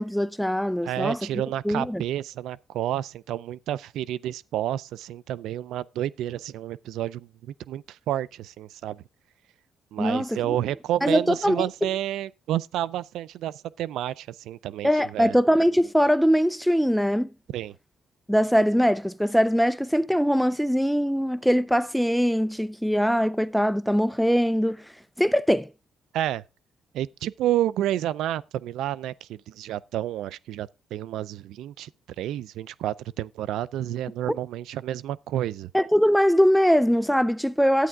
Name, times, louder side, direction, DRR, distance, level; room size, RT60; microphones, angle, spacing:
voice 1, 0.0-1.2 1.6-2.0 10.0-10.6 11.0-11.6 14.8-17.3 18.3-24.8 25.2-25.7 34.3-34.4 35.7-37.9, equal, ahead, 0.5 m, -22 dB
voice 2, 0.8-9.0 9.9-15.4 17.5-17.7 26.1-26.4 26.9-31.9 32.2-35.7, right 12 dB, 85° right, 0.4 m, -30 dB
11.5 x 8.9 x 3.5 m
cardioid pair, 90°, 0 cm